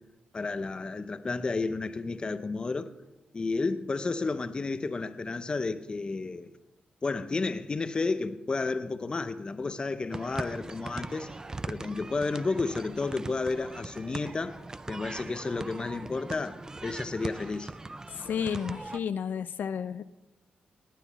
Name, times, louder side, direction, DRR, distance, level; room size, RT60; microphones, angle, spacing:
voice 1, 0.3-2.9 3.3-6.5 7.0-11.3 11.7-14.6 14.9-17.7, left 3 dB, 30° left, 0.6 m, -32 dB
sound 1, 10.1-19.0, right 2 dB, 20° right, 0.4 m, -41 dB
voice 2, 18.1-20.0, left 7 dB, 70° left, 0.4 m, -32 dB
19.5 x 9.3 x 4.1 m
wide cardioid pair, 125°, 3 cm